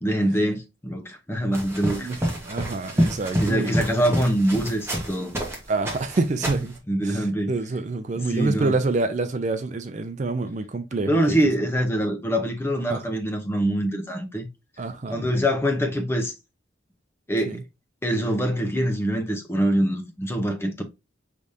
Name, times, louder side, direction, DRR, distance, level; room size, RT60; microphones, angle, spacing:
voice 1, 0.0-2.1 3.4-5.3 6.9-7.5 8.2-8.7 11.1-14.5 15.1-16.3 17.3-17.6 18.0-20.8, right 1 dB, 10° left, 0.6 m, -24 dB
sound 1, 1.5-5.6 5.9-6.7, equal, 10° right, 1.2 m, -28 dB
voice 2, 2.0-4.2 5.7-6.8 7.0-11.4 12.9-13.0 14.8-15.2 17.5-17.6, right 3 dB, 35° right, 0.4 m, -27 dB
5.0 x 3.4 x 2.6 m
head